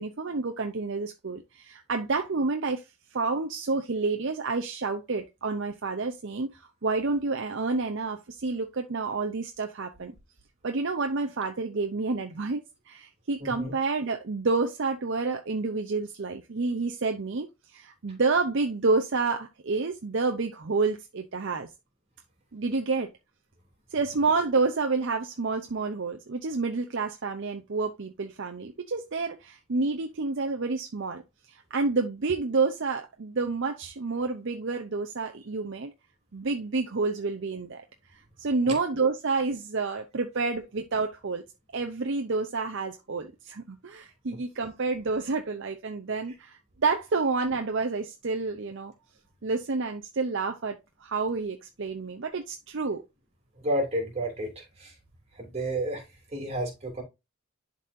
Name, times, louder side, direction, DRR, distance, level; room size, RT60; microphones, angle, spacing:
voice 1, 0.0-2.8 3.1-10.1 10.6-21.7 22.5-23.1 23.9-31.2 31.5-35.9 36.3-37.8 38.4-41.4 41.7-48.9 49.4-53.0, right 3 dB, 55° right, 0.6 m, -29 dB
voice 2, 13.4-13.7 38.6-38.7 44.3-44.4 53.5-55.0 55.3-57.0, right 1 dB, 30° right, 2.8 m, -31 dB
11.0 x 4.1 x 2.6 m
head